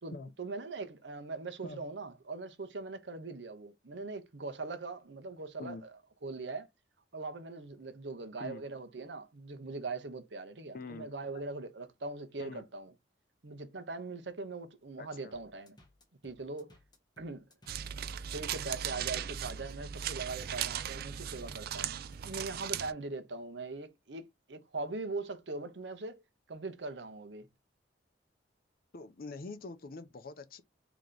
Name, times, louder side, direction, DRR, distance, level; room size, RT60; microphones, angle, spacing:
voice 1, 0.0-5.8 6.2-6.7 7.1-12.9 13.4-15.8 16.2-16.8 17.2-17.4 18.3-21.9 22.2-26.2 26.5-27.5, right 3 dB, 75° right, 0.8 m, -41 dB
voice 2, 10.7-11.1 12.4-12.6 15.0-15.3 28.9-30.6, left 3 dB, 55° left, 0.6 m, -44 dB
sound 1, 15.3-22.5, left 1 dB, 25° left, 1.1 m, -62 dB
sound 2, 17.7-22.9, right 9 dB, 55° right, 0.4 m, -38 dB
3.4 x 2.9 x 3.7 m
head